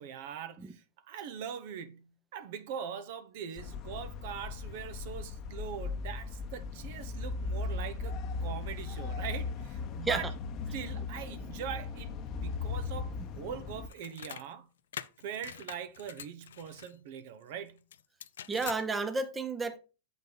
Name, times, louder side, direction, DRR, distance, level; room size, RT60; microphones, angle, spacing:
voice 1, 0.0-10.3 10.7-14.7 15.2-17.8, right 8 dB, 60° right, 0.9 m, -42 dB
sound 1, 3.6-13.9, left 4 dB, 40° left, 0.8 m, -38 dB
sound 2, 13.9-14.5 14.9-16.9 17.9-18.8, left 9 dB, 85° left, 0.5 m, -44 dB
voice 2, 18.5-19.8, right 3 dB, 15° right, 0.8 m, -32 dB
7.3 x 5.4 x 3.9 m
hypercardioid pair, 120°, 0 cm